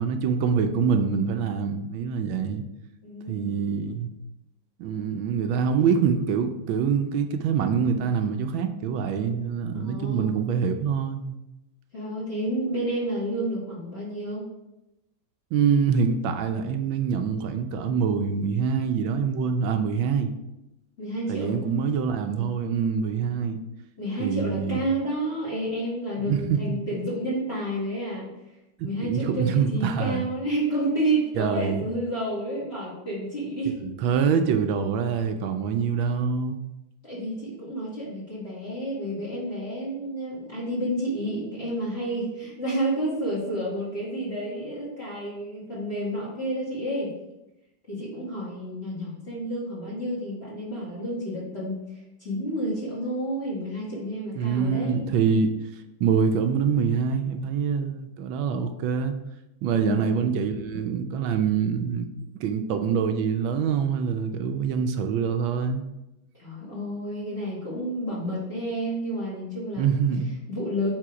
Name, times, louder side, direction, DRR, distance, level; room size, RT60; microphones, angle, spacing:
voice 1, 0.0-2.6 3.3-4.1 4.8-11.4 15.5-20.3 21.3-23.6 24.2-24.8 26.3-26.9 28.8-30.2 31.4-31.9 33.8-36.6 54.4-59.1 59.6-62.1 62.4-65.8 69.8-70.4, right 6 dB, 75° right, 7 dB, 1.3 m, -25 dB
voice 2, 3.0-3.5 9.7-10.3 11.9-14.4 21.0-21.5 24.0-28.3 28.8-33.8 37.0-47.1 47.9-51.8 52.2-55.1 59.7-60.1 66.3-69.9 70.5-70.9, right 1 dB, 30° left, -5 dB, 2.0 m, -30 dB
7.5 x 4.2 x 4.9 m, 0.92 s
omnidirectional pair, 2.3 m